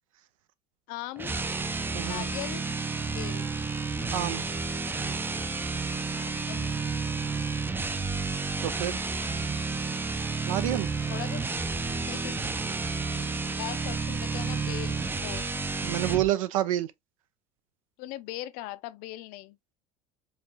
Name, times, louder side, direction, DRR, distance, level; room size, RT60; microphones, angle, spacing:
voice 1, 0.9-1.3 2.0-2.7 3.1-3.5 6.1-6.8 11.1-12.4 12.6-15.5 18.0-19.6, left 16 dB, 50° left, 0.5 m, -40 dB
sound 1, 1.2-16.3, right 4 dB, 10° right, 0.4 m, -31 dB
voice 2, 1.9-2.2 4.1-4.4 8.6-9.0 10.5-10.9 15.8-16.9, right 13 dB, 65° right, 0.5 m, -28 dB
4.8 x 3.5 x 2.2 m
figure-of-eight pair, 65°, 18 cm